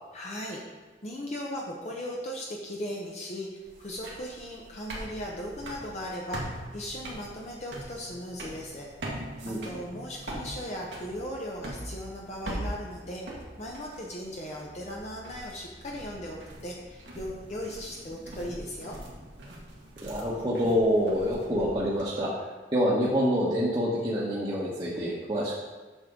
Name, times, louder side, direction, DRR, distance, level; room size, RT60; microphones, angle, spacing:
voice 1, 0.1-0.6 1.0-8.9 9.5-13.2 13.6-19.0, equal, 40° left, -2 dB, 0.9 m, -38 dB
sound 1, 3.6-22.0, right 1 dB, 85° right, 1.8 m, -42 dB
voice 2, 9.4-9.8 20.0-25.6, equal, 30° right, -8 dB, 1.2 m, -27 dB
8.1 x 6.7 x 3.8 m, 1.3 s
head